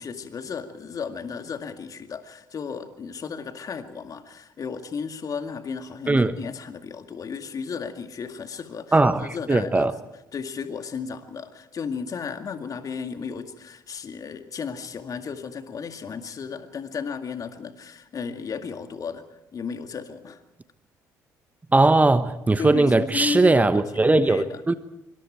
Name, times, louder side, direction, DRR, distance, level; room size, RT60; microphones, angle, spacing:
voice 1, 0.0-9.0 9.2-9.9 10.3-19.2 19.5-20.4 22.6-23.8 24.2-24.6, left 6 dB, 40° left, 8 dB, 2.1 m, -34 dB
voice 2, 8.9-9.9 21.7-24.7, right 2 dB, 15° right, 12 dB, 1.1 m, -19 dB
26.0 x 24.5 x 4.5 m, 0.90 s
figure-of-eight pair, 50°, 9 cm